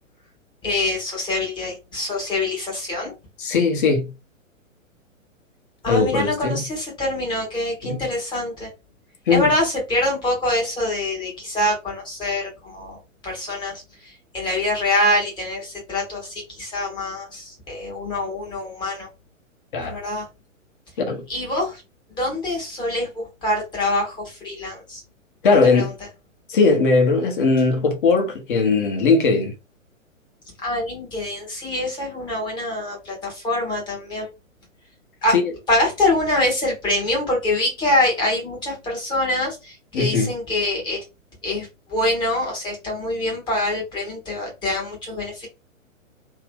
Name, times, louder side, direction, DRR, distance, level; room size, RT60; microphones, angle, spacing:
voice 1, 0.6-3.1 5.8-8.7 9.3-13.0 13.2-19.1 19.8-20.2 21.3-21.8 22.2-25.0 25.7-25.9 30.6-34.3 35.2-35.3 35.7-41.0 41.4-45.5, left 1 dB, 10° left, 0.9 m, -25 dB
voice 2, 3.4-4.1 5.9-6.7 7.8-8.1 9.3-9.5 19.7-20.0 21.0-21.2 25.4-25.9 26.5-29.5 35.3-35.5 39.9-40.3, left 4 dB, 40° left, 1.0 m, -19 dB
2.8 x 2.5 x 3.4 m
figure-of-eight pair, 120°, 40 cm